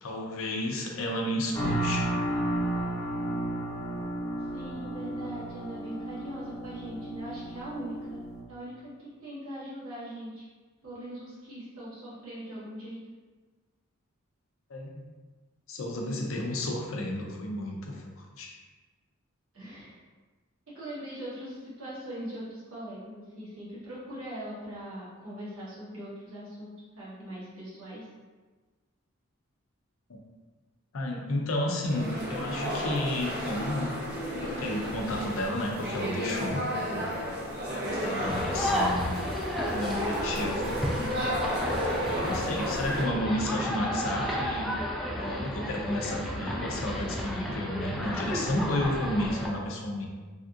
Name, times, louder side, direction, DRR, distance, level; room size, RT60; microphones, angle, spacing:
voice 1, 0.0-2.1 14.7-15.0 15.7-18.5 30.9-34.0 34.4-37.1 37.7-39.1 39.6-40.8 42.2-44.7 45.2-50.0, left 1 dB, 65° left, 0 dB, 0.5 m, -32 dB
sound 1, 1.5-8.4, right 1 dB, 15° left, 0.8 m, -33 dB
voice 2, 4.5-8.2 8.5-10.5 10.8-13.0 19.5-20.0 20.7-28.0, right 1 dB, 70° right, -9 dB, 1.3 m, -41 dB
sound 2, 31.8-43.0, equal, 50° right, 0.6 m, -32 dB
sound 3, 38.2-49.5, equal, ahead, 0.3 m, -33 dB
3.4 x 2.6 x 2.4 m, 1.3 s
head